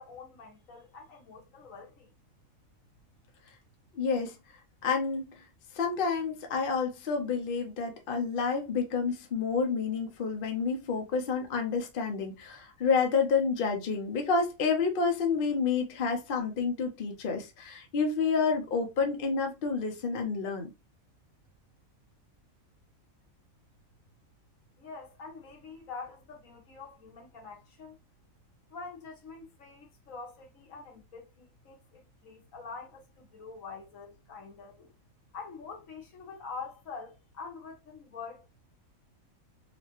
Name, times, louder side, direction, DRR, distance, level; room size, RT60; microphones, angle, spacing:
voice 1, 0.0-2.1 24.8-28.0 28.7-34.9 35.3-38.5, left 4 dB, 75° left, 1.4 m, -45 dB
voice 2, 3.9-4.3 4.8-5.3 5.7-20.7, left 5 dB, 50° left, 0.8 m, -29 dB
4.0 x 2.2 x 2.9 m
omnidirectional pair, 1.4 m